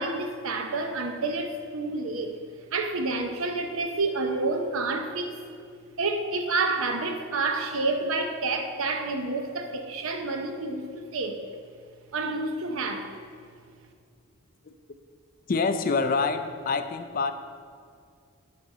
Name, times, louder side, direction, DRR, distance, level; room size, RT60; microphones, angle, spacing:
voice 1, 0.0-2.4 2.7-5.3 6.0-11.4 12.1-13.1, right 3 dB, 70° right, 5 dB, 0.7 m, -29 dB
voice 2, 15.5-17.3, left 4 dB, 40° left, 9 dB, 0.4 m, -26 dB
7.4 x 5.1 x 5.5 m, 2.2 s
head